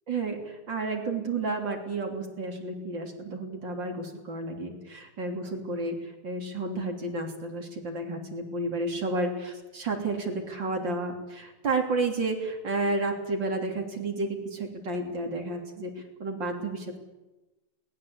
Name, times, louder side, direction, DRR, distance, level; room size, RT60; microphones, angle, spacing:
voice 1, 0.1-17.0, right 2 dB, 60° right, 3 dB, 3.9 m, -31 dB
21.5 x 19.0 x 8.7 m, 1.0 s
omnidirectional pair, 2.3 m